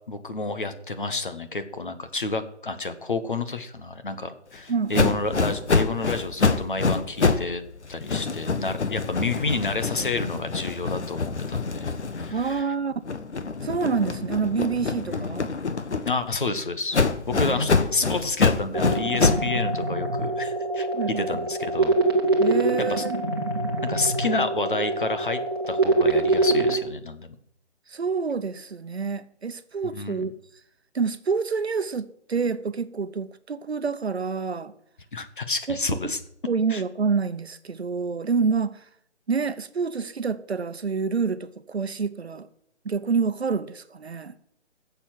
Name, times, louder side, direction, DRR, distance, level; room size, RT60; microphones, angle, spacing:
voice 1, 0.1-7.6 7.9-11.9 12.1-12.7 15.0-15.5 16.0-21.9 22.9-23.0 23.8-25.4 25.7-27.3 29.8-30.2 35.1-36.2 36.7-36.8, left 3 dB, 45° left, 1.4 m, -30 dB
voice 2, 4.7-5.1 12.3-12.9 13.6-15.5 17.3-17.6 20.9-21.3 22.4-23.2 27.9-30.4 30.9-34.7 35.7-36.1 36.5-38.8 39.3-42.5 42.8-44.4, right 5 dB, 60° right, 1.0 m, -27 dB
sound 1, 4.9-7.5 7.8-12.6 13.0-16.4 16.9-19.5, left 4 dB, 70° left, 1.4 m, -26 dB
sound 2, 18.7-26.7, right 2 dB, 20° right, 1.3 m, -24 dB
14.5 x 7.2 x 7.7 m
hypercardioid pair, 180°, 36 cm